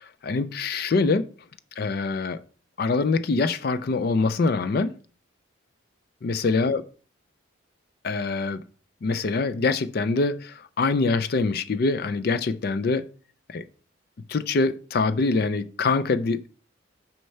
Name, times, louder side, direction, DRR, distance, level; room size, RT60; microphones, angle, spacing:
voice 1, 0.2-1.3 1.8-2.4 2.8-4.9 6.2-6.8 8.0-8.6 9.0-13.1 13.5-13.6 14.3-16.5, left 3 dB, 50° left, 0.4 m, -24 dB
6.4 x 4.4 x 5.5 m
head